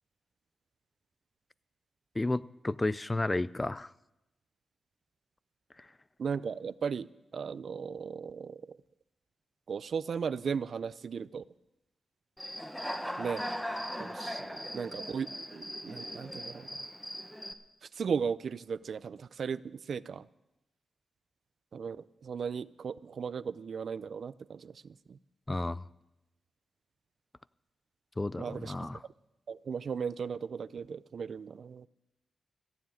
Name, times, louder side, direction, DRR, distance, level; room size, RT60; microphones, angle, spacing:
voice 1, 2.2-3.9 25.5-25.8 28.2-29.0, left 2 dB, 25° left, 19 dB, 0.4 m, -32 dB
voice 2, 6.2-7.1 7.3-8.6 9.7-11.4 13.2-13.5 14.0-16.7 17.9-19.6 19.9-20.3 21.7-25.2 28.4-28.8 29.5-31.9, right 6 dB, 65° right, 18 dB, 0.4 m, -36 dB
Human voice / Cricket, 12.4-17.5, equal, 5° left, 1.2 m, -39 dB
15.5 x 7.2 x 9.1 m, 0.93 s
cardioid pair, 55°, 0 cm